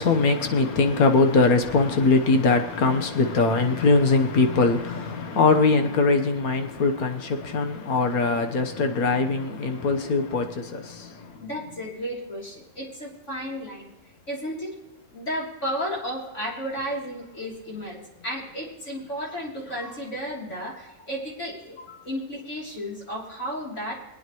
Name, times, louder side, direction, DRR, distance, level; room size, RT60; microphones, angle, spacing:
voice 1, 0.0-11.3, left 3 dB, 85° left, 1.6 m, -22 dB
voice 2, 11.4-13.9 14.3-14.7 15.1-24.1, equal, 55° left, 3.6 m, -33 dB
22.0 x 9.5 x 3.1 m
omnidirectional pair, 1.5 m